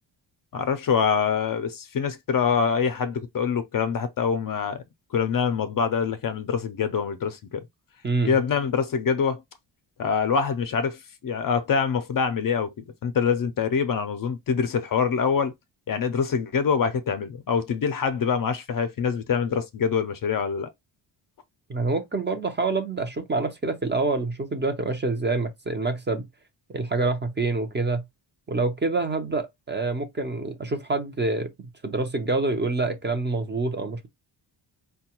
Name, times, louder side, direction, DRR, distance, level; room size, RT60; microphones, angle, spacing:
voice 1, 0.5-4.8 5.1-7.7 8.3-9.4 10.0-12.7 13.0-15.5 15.9-20.7, left 6 dB, 50° left, 0.5 m, -25 dB
voice 2, 21.7-26.2 26.7-28.0 28.5-34.1, right 3 dB, 25° right, 0.6 m, -26 dB
4.5 x 2.2 x 2.9 m
wide cardioid pair, 150°, 46 cm